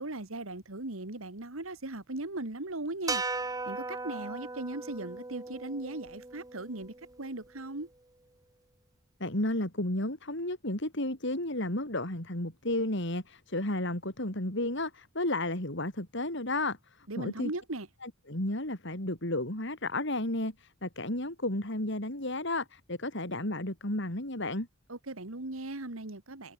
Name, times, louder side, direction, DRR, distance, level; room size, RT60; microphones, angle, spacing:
voice 1, 0.0-3.2 3.7-7.9 17.1-17.9 24.9-26.5, right 2 dB, 75° right, 2.1 m, -38 dB
sound 1, 3.1-7.4, right 3 dB, 15° right, 1.0 m, -38 dB
voice 2, 9.2-17.5 18.0-24.7, left 1 dB, 60° left, 4.5 m, -33 dB
head